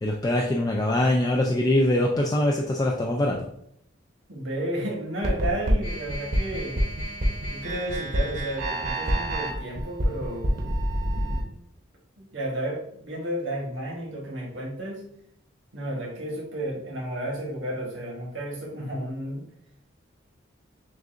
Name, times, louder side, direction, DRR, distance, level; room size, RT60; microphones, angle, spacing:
voice 1, 0.0-3.4, left 1 dB, 20° left, -1 dB, 0.3 m, -23 dB
voice 2, 4.3-6.8 7.5-10.5 11.0-11.6 12.2-15.0 15.7-19.4, right 1 dB, 75° right, -3 dB, 1.3 m, -32 dB
sound 1, 5.2-11.4, equal, 45° right, 0.8 m, -27 dB
6.3 x 2.5 x 2.5 m, 0.71 s
head